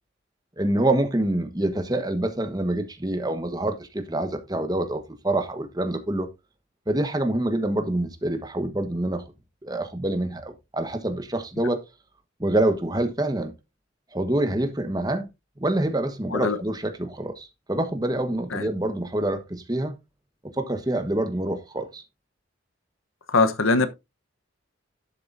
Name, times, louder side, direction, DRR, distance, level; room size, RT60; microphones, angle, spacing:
voice 1, 0.6-6.3 6.9-9.2 9.6-11.8 12.4-13.5 14.1-15.3 15.6-19.9 20.6-22.0, right 1 dB, 20° right, 1.3 m, -26 dB
voice 2, 23.3-23.9, left 3 dB, 90° left, 1.0 m, -21 dB
11.5 x 7.7 x 2.6 m
head